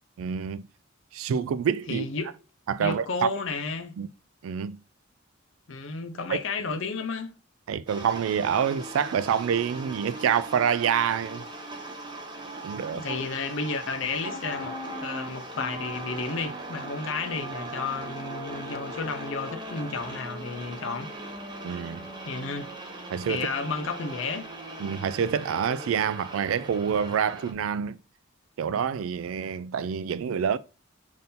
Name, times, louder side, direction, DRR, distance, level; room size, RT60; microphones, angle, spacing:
voice 1, 0.2-0.6 1.1-2.0 2.7-3.3 4.0-4.1 4.4-4.8 6.3-6.4 7.7-11.4 12.6-13.0 21.6-22.1 23.1-23.5 24.8-28.0 28.6-30.6, right 7 dB, 90° right, 0.3 m, -27 dB
voice 2, 1.9-2.3 2.8-4.0 5.7-7.3 12.9-21.1 22.2-22.7 23.3-24.5, left 4 dB, 65° left, 0.6 m, -32 dB
sound 1, 7.9-27.5, right 1 dB, 20° right, 0.8 m, -39 dB
4.2 x 2.6 x 3.5 m
head